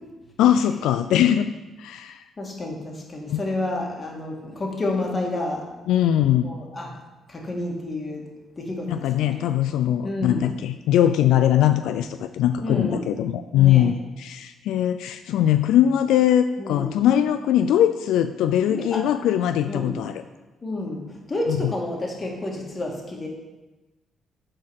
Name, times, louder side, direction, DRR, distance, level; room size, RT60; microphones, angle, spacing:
voice 1, 0.4-1.5 1.8-2.2 3.3-3.4 5.9-6.5 8.9-20.2, left 11 dB, 85° left, 9 dB, 0.3 m, -21 dB
voice 2, 2.4-5.7 6.4-6.9 7.3-8.3 8.6-9.4 10.0-10.6 12.6-13.1 13.5-13.9 16.6-17.1 18.7-19.1 19.7-20.0 20.6-23.3, left 2 dB, 30° left, 0 dB, 2.0 m, -30 dB
8.5 x 4.4 x 6.4 m, 1.2 s
cardioid pair, 90°, 0 cm